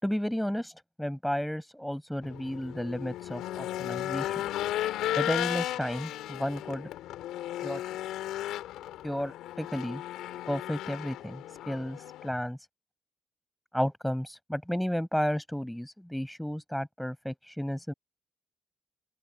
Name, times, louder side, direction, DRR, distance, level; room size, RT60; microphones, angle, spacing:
voice 1, 0.0-0.7 1.0-4.4 5.2-6.9 7.6-7.8 9.0-10.0 10.5-12.6 13.7-17.9, equal, 5° left, 5.6 m, -32 dB
Race car auto racing / Engine, 2.2-12.3, left 13 dB, 85° left, 3.0 m, -35 dB
open air
supercardioid pair, 50°, 0 cm